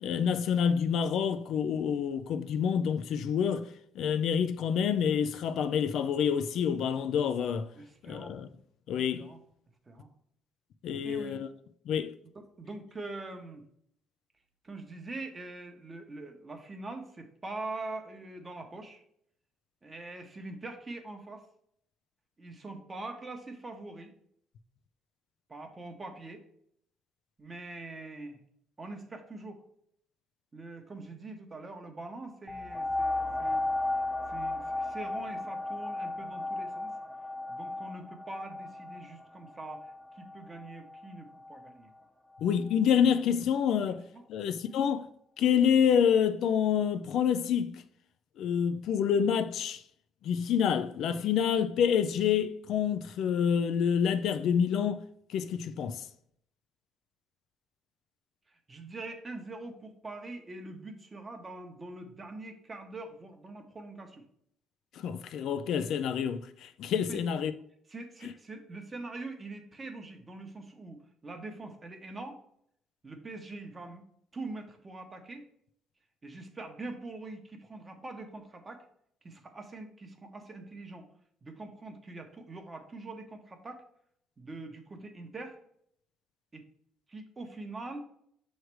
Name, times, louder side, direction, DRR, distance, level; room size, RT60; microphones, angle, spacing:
voice 1, 0.0-3.7 4.0-7.7 8.0-8.5 8.9-9.3 10.8-11.5 11.9-12.1 42.4-44.0 44.3-45.1 45.4-47.8 48.4-49.8 50.2-55.0 55.3-56.1 64.9-67.5, left 8 dB, 65° left, 0.4 m, -27 dB
voice 2, 7.7-8.3 9.2-9.4 9.9-10.1 11.0-11.4 12.3-13.6 14.6-19.0 19.8-21.5 22.4-24.1 25.5-26.5 27.4-28.4 28.8-29.6 30.5-33.7 34.3-36.9 37.5-41.9 44.1-44.2 58.5-64.2 67.1-67.2 67.9-72.4 73.0-74.0 74.3-75.4 76.2-78.9 79.2-81.1 81.4-83.8 84.4-85.6 86.5-86.7 87.1-88.0, right 2 dB, 20° right, 0.9 m, -43 dB
sound 1, 32.5-41.7 42.4-42.5, left 2 dB, 5° left, 0.5 m, -35 dB
6.4 x 3.2 x 4.6 m
cardioid pair, 130°, 0 cm